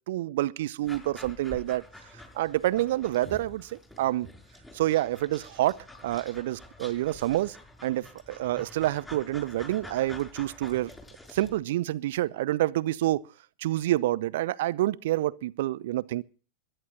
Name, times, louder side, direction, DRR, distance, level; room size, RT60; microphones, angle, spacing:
voice 1, 0.1-1.8 2.3-4.3 4.7-7.6 7.8-10.9 11.3-13.2 13.6-16.2, right 15 dB, 55° right, 0.8 m, -28 dB
Dog, 0.9-11.6, left 1 dB, 10° left, 5.8 m, -48 dB
22.5 x 11.0 x 4.1 m
figure-of-eight pair, 90°, 0 cm